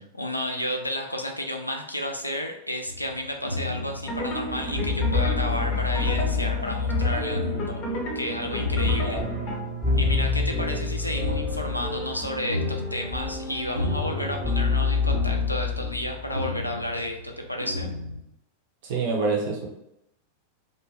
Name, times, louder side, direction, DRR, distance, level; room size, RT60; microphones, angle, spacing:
voice 1, 0.0-7.8 8.1-9.2 10.0-17.9, left 1 dB, 85° left, 3 dB, 0.4 m, -32 dB
sound 1, 2.9-18.2, left 2 dB, 90° right, 0.3 m, -34 dB
sound 2, 4.0-9.6, left 2 dB, 40° left, 0.9 m, -29 dB
sound 3, 4.5-16.5, left 4 dB, ahead, 0.6 m, -29 dB
voice 2, 9.0-9.3 10.6-10.8 18.8-19.7, right 4 dB, 50° right, 0 dB, 0.7 m, -27 dB
2.5 x 2.2 x 3.0 m, 0.84 s
figure-of-eight pair, 90°, 0 cm